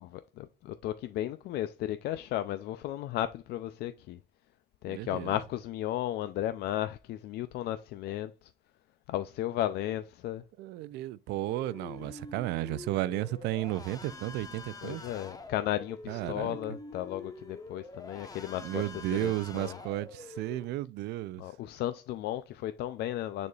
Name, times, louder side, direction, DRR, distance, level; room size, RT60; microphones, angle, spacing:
voice 1, 0.0-4.2 4.8-8.5 9.1-10.4 14.8-19.8 21.4-23.5, left 13 dB, 75° left, 0.5 m, -34 dB
voice 2, 4.9-5.4 10.6-15.0 16.1-16.6 18.6-21.4, right 16 dB, 85° right, 0.5 m, -33 dB
sound 1, 11.5-20.6, left 3 dB, 20° left, 1.0 m, -46 dB
9.5 x 4.2 x 2.4 m
cardioid pair, 110°, 17 cm